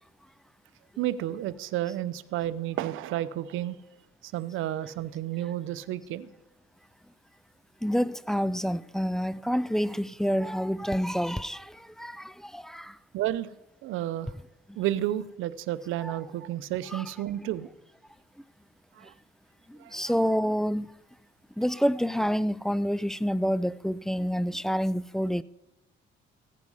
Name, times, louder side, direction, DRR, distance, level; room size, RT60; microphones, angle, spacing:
voice 1, 1.0-3.8 4.2-6.3 13.1-13.5 13.8-14.3 14.8-17.7 19.0-19.1 19.8-19.9, right 13 dB, 90° right, 0.7 m, -31 dB
voice 2, 7.8-11.7 12.0-12.2 12.5-12.9 16.0-16.1 16.9-17.0 19.9-20.9 21.6-25.4, equal, ahead, 0.3 m, -27 dB
16.0 x 9.6 x 5.5 m
cardioid pair, 90°, 20 cm